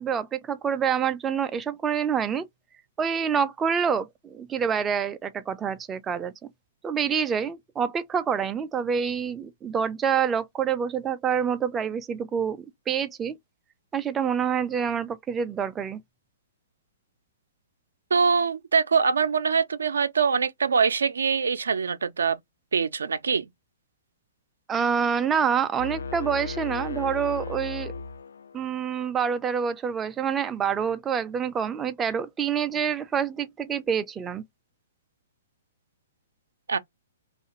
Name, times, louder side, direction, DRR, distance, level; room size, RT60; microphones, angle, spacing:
voice 1, 0.0-2.5 3.0-6.3 6.8-13.4 13.9-16.0 24.7-27.9 28.5-34.4, right 7 dB, 15° right, 0.3 m, -27 dB
voice 2, 18.1-22.4 22.7-23.5 36.7-36.8, right 5 dB, 90° right, 0.4 m, -23 dB
sound 1, 25.8-28.7, left 4 dB, 85° left, 0.3 m, -35 dB
2.5 x 2.4 x 2.8 m
hypercardioid pair, 140°, 0 cm